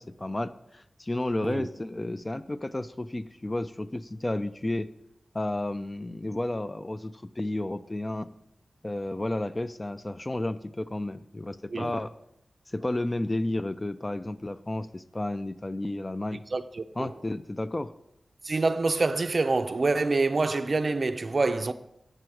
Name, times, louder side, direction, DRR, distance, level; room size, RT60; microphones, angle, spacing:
voice 1, 0.0-4.9 5.3-8.3 8.8-12.1 12.7-16.4 17.0-17.9, left 1 dB, 25° left, 0.4 m, -32 dB
voice 2, 16.5-17.1 18.4-21.7, right 3 dB, 50° right, 0.4 m, -26 dB
7.7 x 6.2 x 4.7 m
wide cardioid pair, 65°, 0 cm